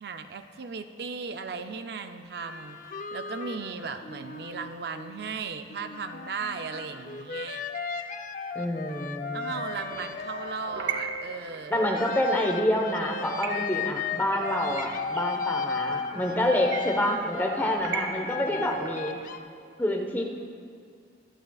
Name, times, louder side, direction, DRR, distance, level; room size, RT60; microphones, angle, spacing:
voice 1, 0.0-7.6 9.3-11.8 18.1-18.7, right 5 dB, 60° right, 8 dB, 0.5 m, -37 dB
sound 1, 2.3-5.3 5.7-11.5 11.9-19.4, left 5 dB, 50° left, 0.6 m, -35 dB
voice 2, 8.5-9.5 11.7-19.2 19.8-20.2, left 1 dB, 10° left, 1 dB, 1.0 m, -27 dB
sound 2, 9.5-19.3, right 5 dB, 90° right, 0.8 m, -39 dB
24.5 x 9.0 x 2.4 m, 2.3 s
head